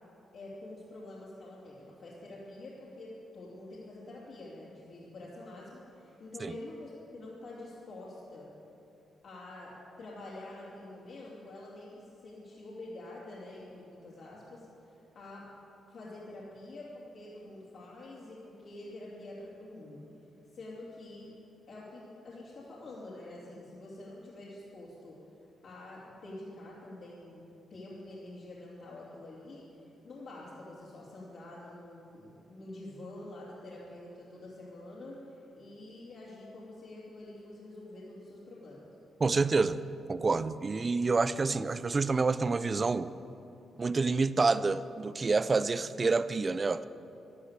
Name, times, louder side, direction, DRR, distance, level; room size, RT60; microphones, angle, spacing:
voice 1, 0.3-8.5 9.2-14.7 15.1-15.5 15.9-20.0 20.5-21.3 21.7-25.2 25.6-27.4 27.7-38.9, left 2 dB, 55° left, 2.8 m, -47 dB
voice 2, 39.2-39.8 40.1-43.1 43.8-46.9, right 4 dB, 25° right, 0.4 m, -28 dB
13.5 x 12.0 x 8.2 m
wide cardioid pair, 170°, 0 cm